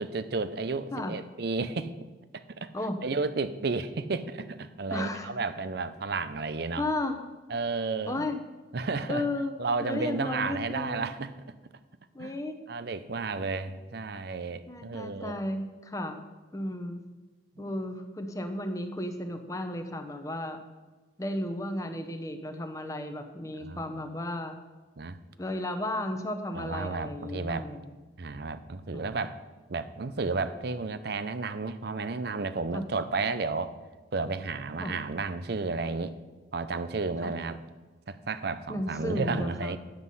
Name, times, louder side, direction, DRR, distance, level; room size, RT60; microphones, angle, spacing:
voice 1, 0.0-1.9 2.3-2.7 3.0-6.8 7.5-8.3 8.7-9.2 9.6-11.3 12.2-12.4 12.7-15.4 17.6-17.7 23.6-23.8 25.0-25.2 26.5-27.7 28.2-29.4 29.7-33.7 34.1-36.1 36.5-37.6 38.1-39.8, right 3 dB, 55° right, 13 dB, 0.6 m, -32 dB
voice 2, 4.9-5.3 6.8-7.2 8.1-8.4 9.1-9.5 9.8-11.1 12.1-12.6 14.7-16.2 16.5-17.0 17.6-20.6 21.2-24.6 25.4-28.0 28.9-29.1 32.7-32.9 34.8-34.9 37.2-37.4 38.7-39.8, left 1 dB, 15° left, 6 dB, 0.8 m, -34 dB
10.5 x 8.0 x 5.5 m, 1.2 s
head